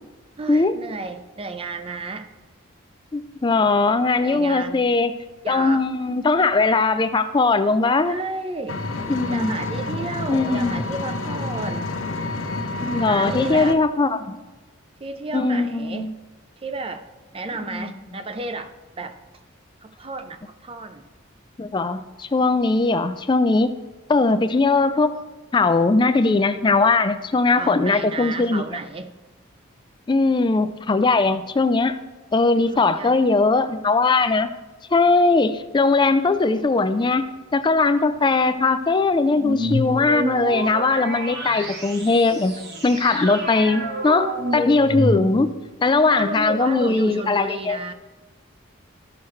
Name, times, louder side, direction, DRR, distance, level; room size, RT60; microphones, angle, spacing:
voice 1, 0.4-2.3 4.2-4.9 5.4-5.8 8.0-8.8 9.3-11.9 13.1-13.8 15.0-16.1 16.6-17.1 17.3-19.2 19.8-21.0 27.6-29.2 32.7-33.3 46.1-47.9, right 3 dB, 25° right, 0.5 m, -32 dB
voice 2, 3.1-5.1 5.5-8.2 9.1-9.5 10.3-10.7 12.8-14.4 15.3-16.1 17.7-17.9 21.6-23.7 24.1-25.2 25.5-28.6 30.1-32.0 32.3-34.5 34.9-37.2 37.5-42.6 42.8-45.5 45.8-47.8, left 3 dB, 20° left, 0.3 m, -20 dB
Engine, 8.7-13.7, left 2 dB, 75° left, 0.8 m, -29 dB
sound 1, 39.4-45.7, equal, 50° right, 1.2 m, -28 dB
13.5 x 5.9 x 3.2 m
head